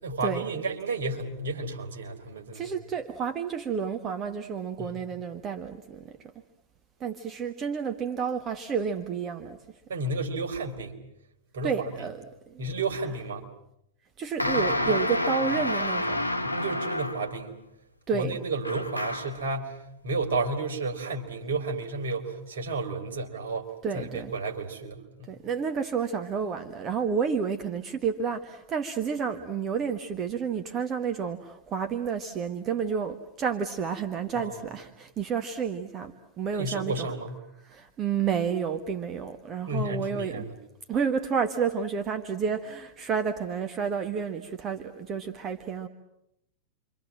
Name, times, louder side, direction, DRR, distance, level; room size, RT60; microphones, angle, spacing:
voice 1, 0.0-2.8 4.8-5.0 9.9-11.0 11.5-12.1 12.6-13.5 16.5-17.6 18.1-23.7 23.9-25.4 34.3-34.6 36.5-37.4 39.7-40.5, right 3 dB, 65° right, 2 dB, 4.3 m, -32 dB
voice 2, 2.5-6.2 7.0-9.6 11.6-12.2 12.5-12.6 14.2-16.2 18.1-18.4 23.8-24.3 25.3-37.1 37.7-40.4 40.9-45.9, right 6 dB, 30° right, 6 dB, 1.6 m, -30 dB
sound 1, 14.4-17.4 18.6-19.4, left 1 dB, 85° left, 1.0 m, -29 dB
29.0 x 25.5 x 7.5 m, 0.79 s
figure-of-eight pair, 90°, 0 cm